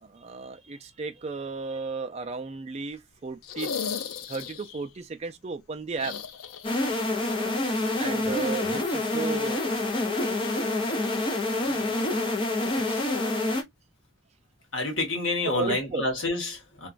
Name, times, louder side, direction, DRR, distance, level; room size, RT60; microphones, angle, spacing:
voice 1, 0.0-3.7 4.3-6.1 8.0-9.6 11.6-12.1 12.7-13.2 15.4-16.0, right 4 dB, 30° right, 0.3 m, -34 dB
sound 1, 3.4-4.8 5.9-7.1 7.4-7.5 9.1-9.2, left 6 dB, 90° left, 0.4 m, -35 dB
sound 2, 6.6-13.6, left 2 dB, 25° left, 0.6 m, -27 dB
voice 2, 8.2-8.8 14.7-16.9, left 2 dB, 65° left, 1.1 m, -29 dB
2.9 x 2.3 x 2.4 m
head